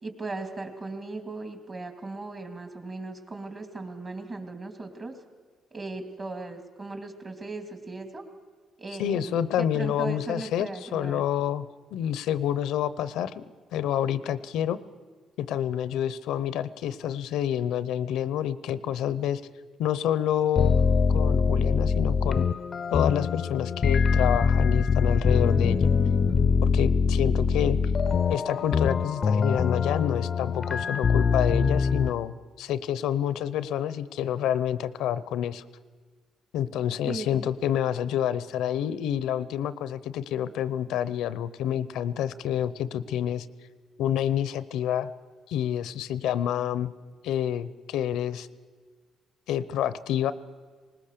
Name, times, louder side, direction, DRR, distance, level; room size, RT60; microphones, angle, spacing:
voice 1, 0.0-5.2 5.7-8.2 8.8-11.2 37.1-37.5, right 3 dB, 35° right, 5 dB, 2.8 m, -37 dB
voice 2, 9.0-11.6 11.9-13.4 13.7-14.8 15.4-19.4 19.8-20.8 21.1-22.5 22.9-25.9 26.6-27.8 28.3-35.6 36.5-43.5 44.0-45.1 45.5-46.9 47.2-48.5 49.5-50.3, left 10 dB, 90° left, 16 dB, 0.7 m, -28 dB
sound 1, 20.6-32.1, left 5 dB, 45° left, 0.6 m, -23 dB
19.5 x 19.5 x 6.7 m, 1.5 s
cardioid pair, 90°, 0 cm